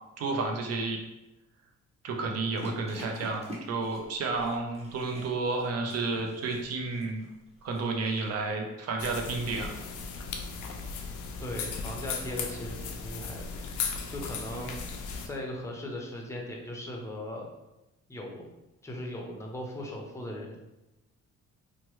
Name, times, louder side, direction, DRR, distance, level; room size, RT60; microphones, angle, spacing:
voice 1, 0.2-1.0 2.0-7.2 7.6-9.8 14.6-14.7, right 3 dB, 55° right, 2 dB, 0.6 m, -31 dB
sound 1, 2.6-8.5, left 1 dB, 20° right, 0.9 m, -47 dB
sound 2, 9.0-15.3, left 5 dB, 80° left, 0.5 m, -37 dB
voice 2, 11.4-13.5 14.1-15.0 15.2-17.5 18.1-18.5 18.8-20.6, left 1 dB, 10° left, 0 dB, 0.6 m, -38 dB
3.0 x 2.2 x 3.0 m, 0.98 s
cardioid pair, 90°, 30 cm